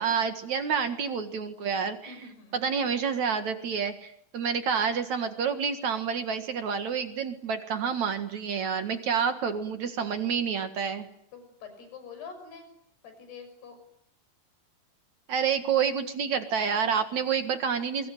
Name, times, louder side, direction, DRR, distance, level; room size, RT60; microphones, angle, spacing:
voice 1, 0.0-2.1 2.5-11.1 15.3-18.1, right 6 dB, 55° right, 8 dB, 2.7 m, -28 dB
voice 2, 2.1-2.7 11.3-12.7 13.0-13.8, left 5 dB, 90° left, 7 dB, 8.2 m, -46 dB
28.0 x 23.0 x 9.3 m, 0.71 s
omnidirectional pair, 4.5 m